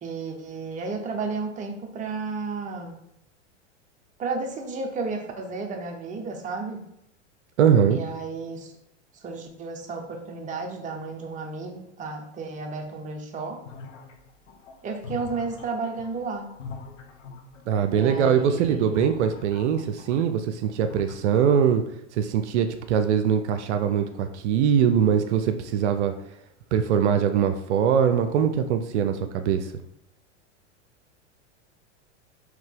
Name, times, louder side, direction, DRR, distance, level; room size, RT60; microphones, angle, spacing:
voice 1, 0.0-3.0 4.2-6.9 7.9-8.7 9.2-13.6 14.8-16.6 17.9-19.0, right 4 dB, 20° right, 3 dB, 0.7 m, -33 dB
voice 2, 7.6-8.0 17.7-21.8 22.1-26.1 26.7-29.7, right 8 dB, 70° right, 8 dB, 0.5 m, -22 dB
sound 1, 13.7-20.4 20.7-21.2, left 5 dB, 85° left, 0.8 m, -43 dB
3.9 x 2.9 x 3.6 m, 0.79 s
hypercardioid pair, 100°, 36 cm